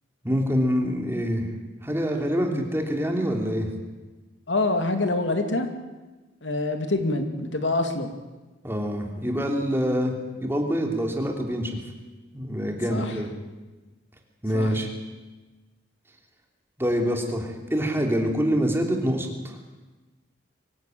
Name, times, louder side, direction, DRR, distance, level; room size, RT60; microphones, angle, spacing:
voice 1, 0.2-1.5 1.8-3.7 8.6-11.7 12.3-13.3 14.4-14.9 16.8-19.6, equal, 15° right, 2 dB, 3.0 m, -25 dB
voice 2, 4.5-5.7 6.4-8.1 12.9-13.2 14.5-14.7, left 2 dB, 75° left, 6 dB, 2.5 m, -25 dB
24.0 x 15.5 x 9.2 m, 1.2 s
head